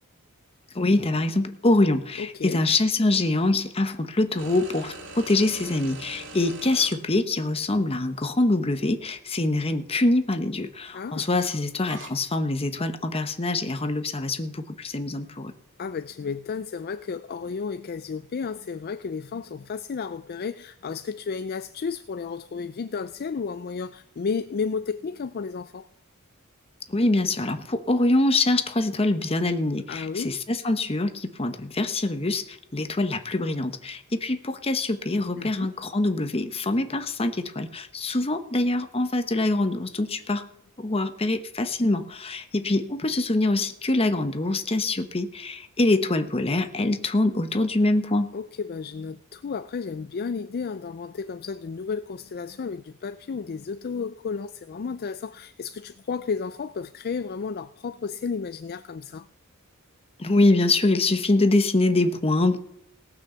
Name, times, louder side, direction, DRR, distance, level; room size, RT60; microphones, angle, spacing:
voice 1, 0.7-15.5 26.9-40.4 40.8-48.3 60.2-62.6, left 2 dB, 25° left, 1.0 m, -24 dB
voice 2, 2.2-2.6 10.9-11.3 15.8-25.9 29.9-30.4 35.4-35.7 48.3-59.3, left 5 dB, 45° left, 0.4 m, -32 dB
sound 1, 4.4-7.0 8.0-8.1 11.3-12.1, right 3 dB, 55° right, 1.9 m, -42 dB
18.5 x 6.2 x 6.9 m
head